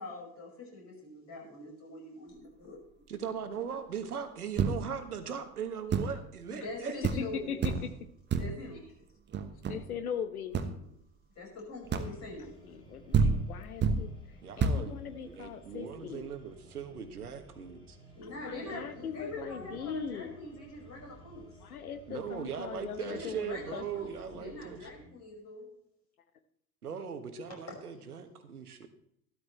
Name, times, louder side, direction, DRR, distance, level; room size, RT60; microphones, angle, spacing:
voice 1, 0.0-2.8 6.5-7.7 8.3-9.1 10.8-10.9 11.4-12.6 18.1-21.6 23.0-25.7, left 2 dB, 35° left, -1 dB, 5.6 m, -44 dB
voice 2, 3.1-7.0 14.4-18.0 19.7-19.8 22.1-24.8 26.8-28.9, right 7 dB, 75° right, 9 dB, 1.4 m, -39 dB
sound 1, 4.6-5.1 5.9-6.3 6.7-6.8 7.0-7.3 7.6-8.0 8.3-8.7 9.3-10.0 10.5-10.8 11.9-12.3 12.9-13.0 13.1-14.1 14.6-14.9, right 5 dB, 25° right, 1.2 m, -29 dB
voice 3, 7.2-7.7 9.7-10.6 12.6-14.1 14.6-16.3 18.2-20.4 21.6-23.8 24.3-24.4, left 7 dB, 70° left, 11 dB, 1.2 m, -40 dB
sound 2, 11.8-25.1, right 1 dB, 10° left, 5.2 m, -56 dB
13.0 x 13.0 x 3.2 m, 0.74 s
figure-of-eight pair, 75°, 45 cm